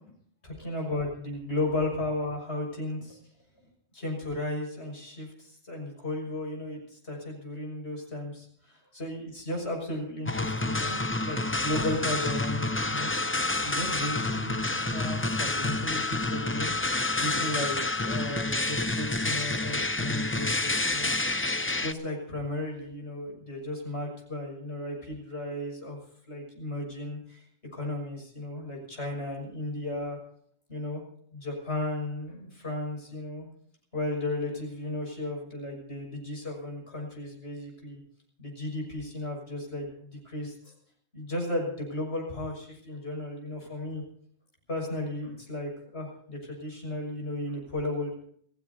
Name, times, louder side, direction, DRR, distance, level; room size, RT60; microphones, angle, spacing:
voice 1, 0.4-3.2 3.9-13.1 13.6-16.7 17.2-21.1 21.8-26.0 26.3-27.4 27.7-30.2 30.7-31.0 31.3-33.5 33.9-38.0 38.4-40.7 41.1-44.0 44.7-48.1, left 1 dB, 75° left, 0 dB, 6.8 m, -34 dB
sound 1, 10.2-21.9, left 2 dB, 15° left, 0.5 m, -29 dB
28.5 x 16.5 x 2.8 m, 0.63 s
omnidirectional pair, 1.1 m